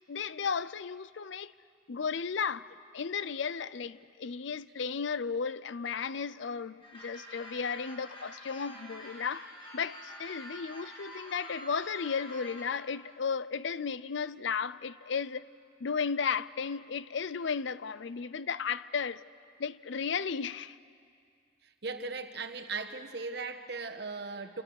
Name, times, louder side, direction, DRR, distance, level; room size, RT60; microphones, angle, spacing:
voice 1, 0.1-1.5 1.9-15.5 15.8-19.2 19.6-20.8, left 6 dB, 70° left, 0.5 m, -34 dB
sound 1, 6.8-12.6, equal, 25° left, 4.5 m, -47 dB
voice 2, 21.8-24.6, right 4 dB, 55° right, 1.3 m, -38 dB
28.0 x 25.5 x 6.5 m
head